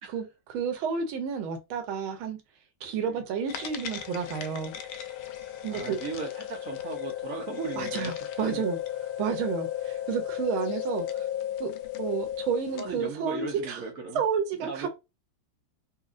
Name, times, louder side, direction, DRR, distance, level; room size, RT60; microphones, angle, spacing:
voice 1, 0.1-2.4 2.8-4.7 5.6-6.0 7.8-8.8 9.2-11.2 11.6-11.7 12.0-13.8 14.1-14.9, right 6 dB, 85° right, 1.5 m, -31 dB
sound 1, 3.5-13.0, left 11 dB, 85° left, 1.4 m, -35 dB
voice 2, 5.7-8.1 8.4-8.6 12.8-14.2 14.6-14.9, right 5 dB, 65° right, 0.8 m, -37 dB
4.1 x 2.7 x 2.5 m
omnidirectional pair, 2.2 m